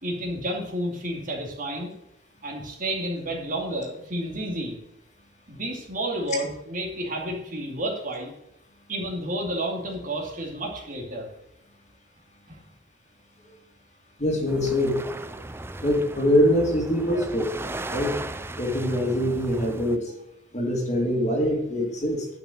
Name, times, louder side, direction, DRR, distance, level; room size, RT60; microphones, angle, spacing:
voice 1, 0.0-1.9 2.4-4.8 5.5-8.3 8.9-11.3 12.5-12.6, right 1 dB, 45° right, 0 dB, 2.5 m, -31 dB
voice 2, 14.2-15.0 15.8-17.5 17.9-18.2 18.6-20.1 20.5-22.3, equal, 35° left, 1 dB, 2.5 m, -23 dB
sound 1, 14.5-20.0, right 2 dB, 10° right, 0.5 m, -36 dB
11.0 x 5.9 x 7.6 m, 0.83 s
head